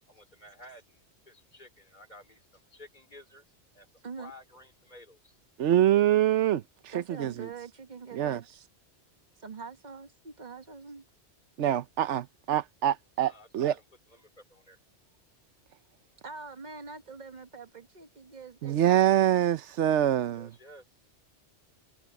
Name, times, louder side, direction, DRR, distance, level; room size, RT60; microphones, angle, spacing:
voice 1, 0.1-3.4 3.7-3.9 4.2-5.4 13.2-14.8 20.3-20.8, left 1 dB, 40° left, 4.1 m, -53 dB
voice 2, 5.6-7.5 8.1-8.4 11.6-13.7 18.6-20.5, right 11 dB, 85° right, 1.0 m, -25 dB
voice 3, 6.9-8.4 9.4-11.1 16.2-18.8, right 5 dB, 40° right, 1.5 m, -44 dB
omnidirectional pair, 1.2 m